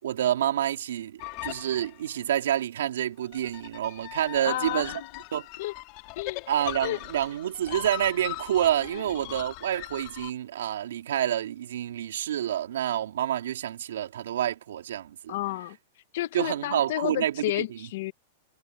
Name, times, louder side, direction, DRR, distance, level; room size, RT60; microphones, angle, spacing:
voice 1, 0.0-5.0 5.3-5.4 6.5-15.3 16.3-17.6, right 11 dB, 85° right, 3.3 m, -28 dB
sound 1, 1.2-2.2 3.2-10.3, left 20 dB, 35° left, 2.4 m, -40 dB
voice 2, 4.4-5.1 5.6-5.7 6.2-6.4 6.8-7.0 8.9-9.0 15.3-15.8 16.1-18.1, left 15 dB, 50° left, 1.0 m, -31 dB
supercardioid pair, 175°, 0 cm